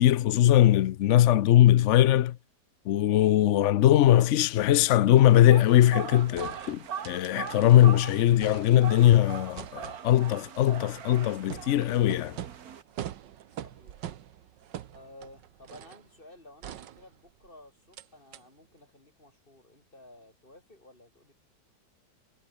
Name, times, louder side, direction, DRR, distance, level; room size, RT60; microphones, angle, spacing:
voice 1, 0.0-2.4 2.9-12.4, left 12 dB, 75° left, 0.6 m, -21 dB
sound 1, 5.2-12.8, right 8 dB, 55° right, 1.7 m, -41 dB
sound 2, 6.4-7.9 8.2-9.1 9.6-16.1 16.6-17.5 17.9-18.1 18.3-18.4, right 11 dB, 80° right, 1.7 m, -44 dB
voice 2, 13.5-14.0 14.9-21.3, left 1 dB, 30° left, 5.6 m, -53 dB
omnidirectional pair, 1.9 m